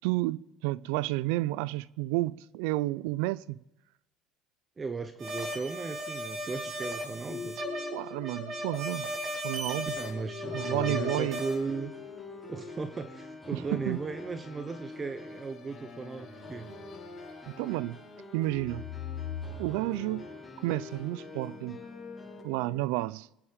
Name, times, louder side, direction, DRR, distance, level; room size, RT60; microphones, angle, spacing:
voice 1, 0.0-3.6 7.9-9.1 9.4-9.9 10.5-11.4 13.5-14.0 17.5-18.0 18.3-18.9 19.6-20.3 20.6-21.8 22.4-23.3, right 18 dB, 85° right, 0.4 m, -31 dB
voice 2, 4.8-7.6 10.0-12.0 12.5-16.7, right 4 dB, 20° right, 0.9 m, -36 dB
sound 1, 5.2-11.6, equal, 45° right, 5.7 m, -36 dB
sound 2, 7.3-9.2 9.5-13.3 14.9-18.2 18.5-22.8, left 7 dB, 55° left, 4.5 m, -44 dB
sound 3, 10.4-22.4, left 2 dB, 5° left, 6.0 m, -46 dB
27.0 x 9.9 x 5.2 m
cardioid pair, 120°, 0 cm